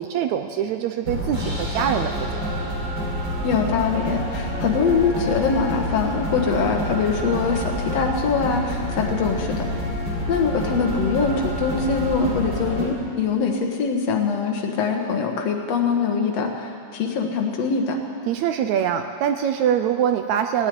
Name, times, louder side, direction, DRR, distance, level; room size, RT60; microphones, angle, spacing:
voice 1, 0.0-2.3 18.3-20.7, right 9 dB, 80° right, 7 dB, 1.7 m, -23 dB
sound 1, 1.0-12.8, equal, 35° right, 4.0 m, -28 dB
voice 2, 3.4-9.7 10.3-18.0, left 5 dB, 55° left, 2 dB, 2.3 m, -23 dB
17.0 x 8.5 x 9.4 m, 2.5 s
omnidirectional pair, 3.8 m